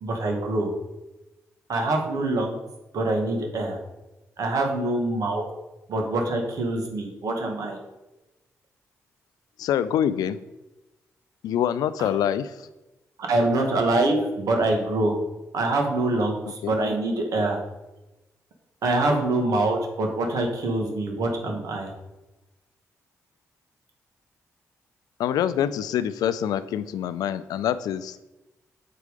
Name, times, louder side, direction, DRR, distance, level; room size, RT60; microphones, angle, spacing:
voice 1, 0.0-0.7 1.7-2.6 2.9-3.8 4.4-5.5 5.9-7.8 12.0-12.1 13.2-15.2 15.5-17.6 18.8-21.9, right 2 dB, 70° right, 2 dB, 1.9 m, -25 dB
voice 2, 9.6-10.4 11.4-12.5 16.6-16.7 25.2-28.2, left 10 dB, 80° left, 14 dB, 0.4 m, -25 dB
7.6 x 4.7 x 5.2 m, 1.0 s
supercardioid pair, 50°, 6 cm